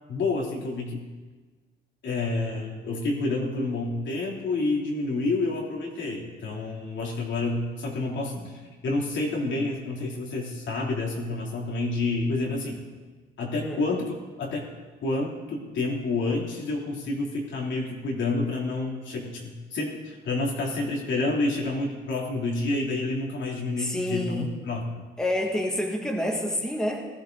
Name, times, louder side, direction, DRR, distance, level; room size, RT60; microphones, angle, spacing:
voice 1, 0.1-1.0 2.0-12.8 13.4-14.1 14.4-14.7 15.0-24.9, left 2 dB, 70° left, -1 dB, 3.2 m, -29 dB
voice 2, 23.8-24.5 25.2-27.1, left 1 dB, 5° left, 0 dB, 2.1 m, -28 dB
16.0 x 13.5 x 4.0 m, 1.3 s
cardioid pair, 90°, 20 cm